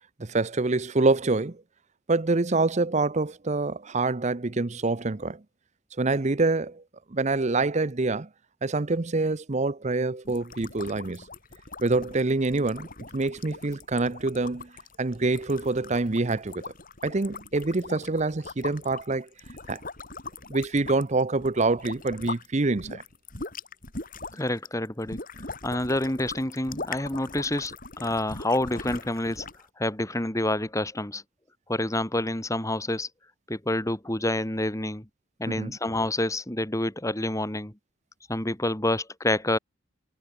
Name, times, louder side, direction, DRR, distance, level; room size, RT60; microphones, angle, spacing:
voice 1, 0.2-1.6 2.1-5.4 6.0-6.8 7.1-8.3 8.6-11.2 11.8-12.9 13.1-14.7 15.0-16.7 17.0-19.3 19.7-19.8 20.5-23.0 35.5-35.8, right 3 dB, 35° right, 0.8 m, -26 dB
sound 1, 10.2-22.5 22.8-29.7, left 3 dB, 45° left, 7.2 m, -41 dB
voice 2, 24.3-25.2 25.6-29.5 29.8-31.2 31.7-33.1 33.5-35.1 35.4-37.7 38.3-39.6, left 1 dB, 15° left, 2.1 m, -28 dB
head